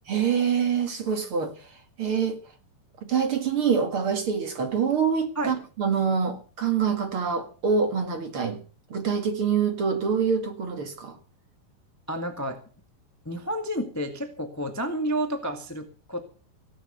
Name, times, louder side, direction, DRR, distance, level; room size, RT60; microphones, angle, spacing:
voice 1, 0.1-2.4 3.0-8.6 8.9-11.2, right 6 dB, 45° right, 2.3 m, -25 dB
voice 2, 12.1-12.6 13.2-16.2, right 1 dB, 15° left, 0.7 m, -30 dB
17.5 x 8.9 x 6.9 m
omnidirectional pair, 4.2 m